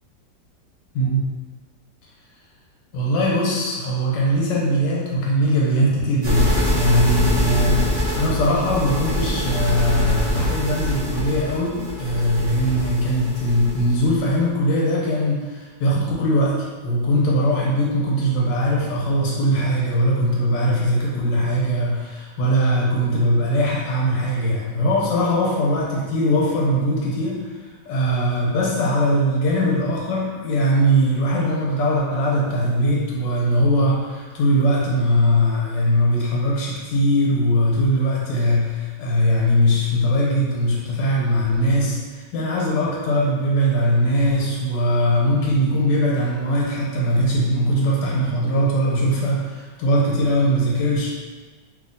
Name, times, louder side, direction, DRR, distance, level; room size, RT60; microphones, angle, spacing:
voice 1, 2.9-7.9 8.2-51.1, equal, 90° left, -4 dB, 1.4 m, -20 dB
sound 1, 6.2-14.3, left 1 dB, 40° right, 0.8 m, -24 dB
2.9 x 2.8 x 2.6 m, 1.4 s
omnidirectional pair, 1.9 m